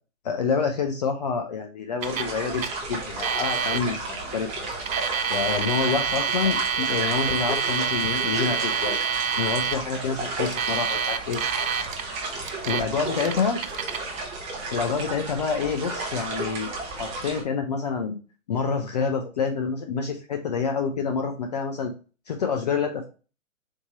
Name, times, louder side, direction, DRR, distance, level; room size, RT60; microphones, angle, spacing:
voice 1, 0.2-4.7 5.3-9.0 9.4-11.4 12.7-13.6 14.7-18.2 18.5-21.9 22.3-23.1, left 5 dB, 35° left, 4 dB, 0.4 m, -27 dB
sound 1, 2.0-17.4, right 2 dB, 15° right, 0.8 m, -33 dB
Alarm, 2.0-2.3 2.6-2.7 3.2-3.8 4.7-9.8 10.5-12.0 12.5-12.8 13.2-14.0, right 6 dB, 80° right, 0.6 m, -27 dB
4.4 x 2.8 x 2.8 m, 0.34 s
hypercardioid pair, 130°, 39 cm